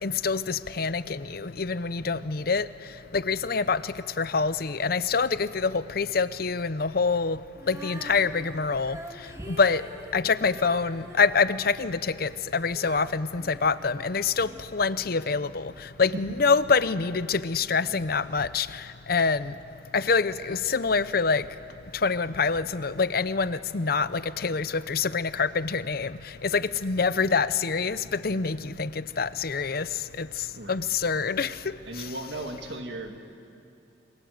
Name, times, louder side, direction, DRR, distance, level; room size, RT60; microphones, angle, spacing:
voice 1, 0.0-2.7 3.1-7.4 7.7-9.0 9.5-9.8 10.1-15.7 16.0-19.5 19.9-21.4 22.0-29.9 30.2-30.3 30.7-31.6 32.0-32.1, left 4 dB, 55° left, 15 dB, 0.7 m, -26 dB
Female singing, 7.6-14.6 15.2-15.3, right 1 dB, 15° right, 1.7 m, -45 dB
voice 2, 30.5-30.9 31.8-33.2, right 2 dB, 75° right, 4 dB, 2.5 m, -36 dB
28.0 x 25.0 x 8.0 m, 2.6 s
head